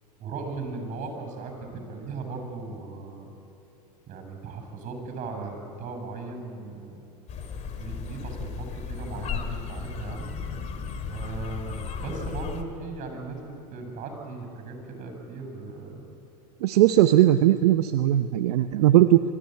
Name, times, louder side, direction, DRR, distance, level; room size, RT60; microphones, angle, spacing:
voice 1, 0.2-3.3 4.1-7.1 7.8-10.3 11.0-16.1, right 3 dB, 40° right, 4 dB, 7.8 m, -37 dB
sound 1, 7.3-12.6, left 6 dB, 35° left, 2.2 m, -35 dB
voice 2, 16.6-19.2, right 13 dB, 70° right, 10 dB, 0.8 m, -19 dB
23.5 x 15.0 x 9.5 m, 2.7 s
hypercardioid pair, 105°, 20 cm